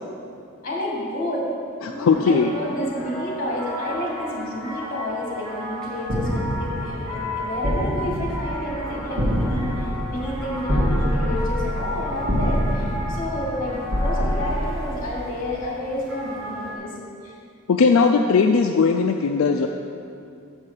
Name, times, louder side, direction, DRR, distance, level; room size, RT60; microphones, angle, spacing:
voice 1, 0.6-1.5 1.9-16.9 17.2-17.3, left 1 dB, 40° left, -3 dB, 2.0 m, -30 dB
voice 2, 1.8-2.5 4.8-4.9 17.7-19.7, left 5 dB, 80° left, 3 dB, 0.4 m, -18 dB
sound 1, 1.8-16.8, equal, 5° left, 1.4 m, -35 dB
sound 2, 6.0-15.6, equal, 80° right, 1.8 m, -26 dB
7.1 x 5.5 x 6.6 m, 2.4 s
head